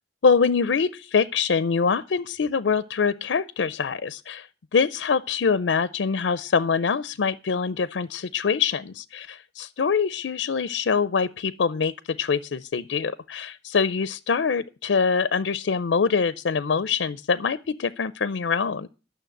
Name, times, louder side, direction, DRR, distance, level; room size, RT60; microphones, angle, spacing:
voice 1, 0.2-11.9 12.2-18.9, left 5 dB, 90° left, 0.5 m, -24 dB
12.0 x 6.5 x 7.7 m
head